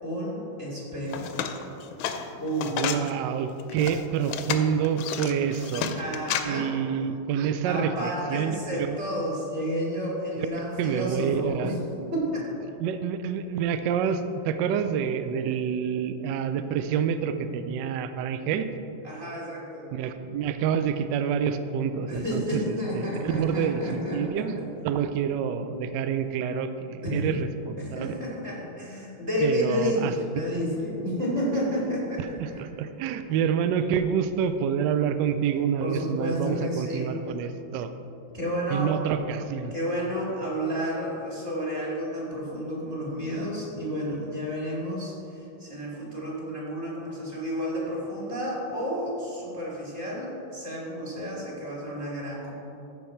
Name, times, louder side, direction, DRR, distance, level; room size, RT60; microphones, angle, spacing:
voice 1, 0.0-1.4 2.4-2.8 5.9-6.7 7.6-11.7 12.1-12.4 19.0-19.9 22.1-24.4 27.0-27.3 27.8-32.6 35.8-37.1 38.3-38.9 39.7-52.5, equal, 30° right, -5 dB, 2.5 m, -31 dB
sound 1, 1.0-3.1 3.6-6.4, left 8 dB, 75° left, 1.4 m, -31 dB
voice 2, 2.8-5.9 6.4-9.0 10.8-11.7 12.8-18.7 19.9-24.6 24.8-28.1 29.4-30.1 32.4-37.9 38.7-39.7, right 7 dB, 80° right, 10 dB, 1.0 m, -27 dB
14.0 x 5.3 x 4.4 m, 2.9 s
omnidirectional pair, 2.4 m